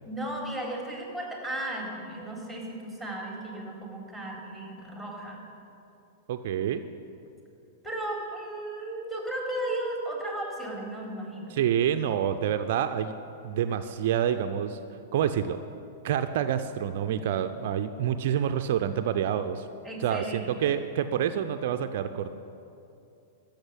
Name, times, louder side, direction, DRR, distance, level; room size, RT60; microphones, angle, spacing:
voice 1, 0.0-5.4 7.8-11.6 19.8-20.8, right 1 dB, 5° left, -2 dB, 3.9 m, -35 dB
voice 2, 6.3-6.8 11.5-13.1 13.4-14.8 15.1-15.6 16.0-19.7 20.0-22.3, right 9 dB, 55° right, 9 dB, 0.5 m, -27 dB
14.0 x 6.6 x 9.9 m, 2.7 s
figure-of-eight pair, 100°, 0 cm